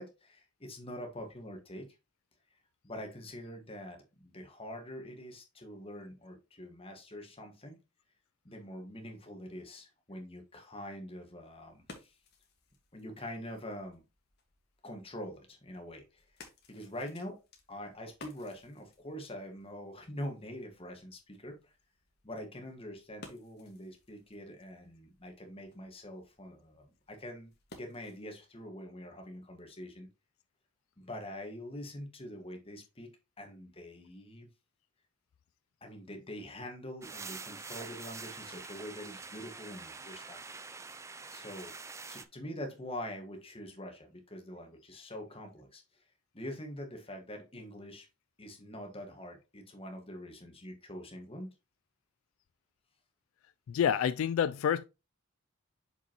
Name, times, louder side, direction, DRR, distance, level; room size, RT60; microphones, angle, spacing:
voice 1, 0.0-1.9 2.8-7.7 8.4-12.1 12.9-14.0 14.8-17.4 17.7-21.7 22.2-30.1 31.0-33.1 33.4-34.5 35.8-40.4 41.3-41.7 42.1-45.8 46.3-48.1 48.4-51.5, left 1 dB, 25° left, 1.6 m, -44 dB
sound 1, 11.3-28.4, left 2 dB, 50° left, 1.6 m, -58 dB
sound 2, 37.0-42.2, right 4 dB, 15° right, 0.3 m, -45 dB
voice 2, 53.7-54.8, left 8 dB, 75° left, 0.3 m, -28 dB
6.5 x 5.3 x 3.0 m
head